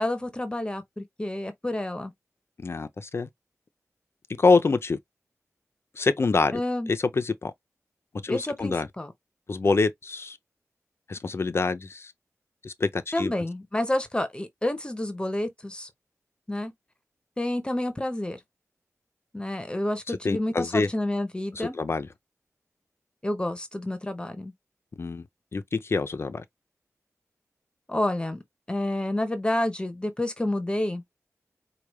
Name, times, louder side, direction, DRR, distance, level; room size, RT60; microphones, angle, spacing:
voice 1, 0.0-2.1 6.5-6.9 8.3-9.1 13.1-15.9 16.5-16.7 17.4-18.4 19.3-21.8 23.2-24.5 27.9-28.4 28.7-31.0, left 1 dB, 15° left, 0.8 m, -29 dB
voice 2, 2.6-3.3 4.4-5.0 6.0-6.6 6.9-7.5 8.2-8.9 9.5-10.4 11.1-12.1 12.6-13.3 20.1-20.9 21.5-22.1 25.0-25.2 25.5-26.4, left 4 dB, 50° left, 0.6 m, -25 dB
4.8 x 2.4 x 3.1 m
wide cardioid pair, 110°, 6 cm